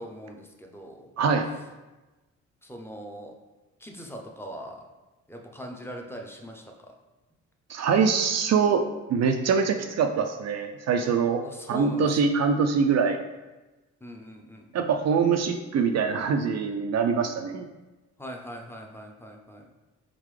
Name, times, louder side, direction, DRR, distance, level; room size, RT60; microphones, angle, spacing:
voice 1, 0.0-1.1 2.6-3.4 3.8-4.8 5.3-6.9 11.4-12.1 14.0-14.9 18.2-19.6, equal, 5° left, 1 dB, 0.7 m, -41 dB
voice 2, 1.2-1.5 7.7-8.8 9.1-11.4 11.7-13.2 14.7-17.7, right 6 dB, 50° right, 6 dB, 0.4 m, -24 dB
4.1 x 3.7 x 3.2 m, 1.1 s
supercardioid pair, 65°, 33 cm